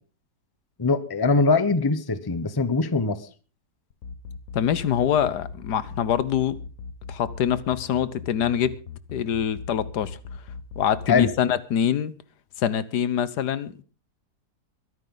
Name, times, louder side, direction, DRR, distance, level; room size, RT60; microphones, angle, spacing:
voice 1, 0.8-3.2 11.1-11.3, left 4 dB, 20° left, 13 dB, 0.9 m, -22 dB
sound 1, 3.9-11.3, left 5 dB, 60° left, 1.4 m, -38 dB
voice 2, 4.5-6.6 7.1-8.8 9.1-10.2 10.8-12.1 12.6-13.8, left 9 dB, 75° left, 16 dB, 1.5 m, -24 dB
22.5 x 11.0 x 3.9 m, 0.37 s
omnidirectional pair, 1.8 m